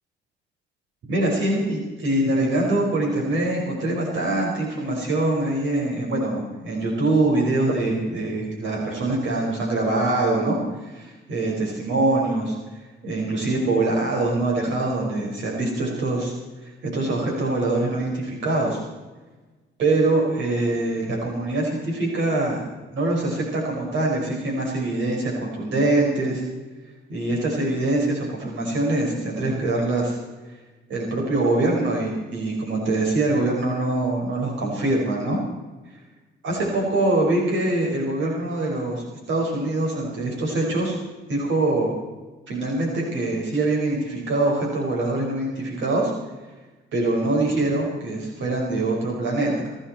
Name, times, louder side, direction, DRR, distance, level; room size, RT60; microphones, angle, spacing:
voice 1, 1.1-16.3 16.6-18.8 19.8-22.6 22.9-26.4 27.1-30.2 30.9-35.4 36.4-41.0 41.3-41.9 42.5-46.1 46.9-49.5, right 2 dB, 75° right, -2 dB, 5.5 m, -24 dB
29.0 x 11.0 x 4.5 m, 1.2 s
cardioid pair, 90°, 20 cm